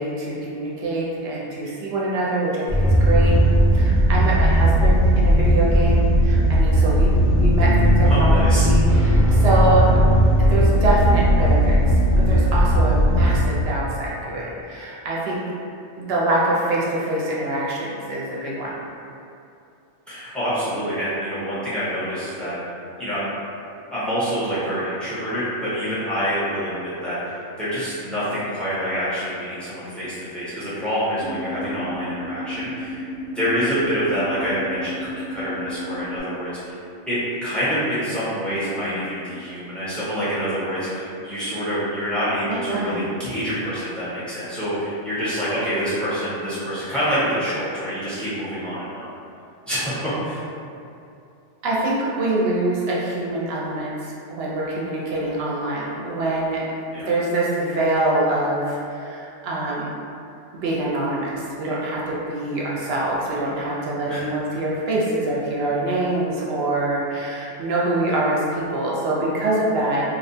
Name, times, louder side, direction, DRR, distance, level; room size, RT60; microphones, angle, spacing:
voice 1, 0.0-3.3 3.7-9.9 10.4-11.8 12.3-15.4 16.0-18.8 42.5-43.0 51.6-56.7 57.0-60.0 60.6-70.0, right 1 dB, 60° right, -5 dB, 0.7 m, -24 dB
sound 1, 2.7-13.4, right 1 dB, 55° left, 0.5 m, -17 dB
voice 2, 8.1-8.7 20.1-22.5 23.0-23.3 23.9-36.7 37.1-49.1 49.7-50.4 56.9-57.1 64.1-64.4, equal, ahead, -12 dB, 0.6 m, -26 dB
sound 2, 31.2-36.2, left 1 dB, 70° left, 0.9 m, -33 dB
2.6 x 2.1 x 2.6 m, 2.6 s
omnidirectional pair, 1.3 m